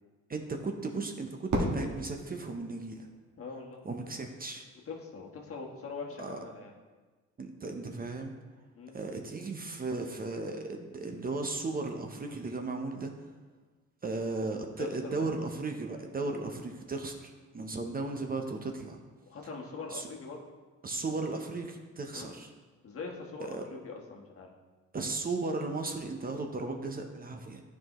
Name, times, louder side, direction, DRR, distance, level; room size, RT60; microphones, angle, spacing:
voice 1, 0.3-3.1 3.8-4.7 6.2-6.4 7.4-8.3 8.9-13.1 14.0-19.0 19.9-20.1 20.8-22.5 23.5-23.6 24.9-27.6, right 3 dB, 30° right, 4 dB, 0.7 m, -36 dB
Fireworks, 1.5-3.7, right 1 dB, 70° right, 1.6 m, -35 dB
voice 2, 3.4-3.9 4.9-6.7 8.7-9.0 14.8-15.3 19.3-20.4 22.1-22.3 22.8-24.5, left 4 dB, 50° left, 0 dB, 1.3 m, -42 dB
10.5 x 4.8 x 3.0 m, 1.3 s
cardioid pair, 90°, 30 cm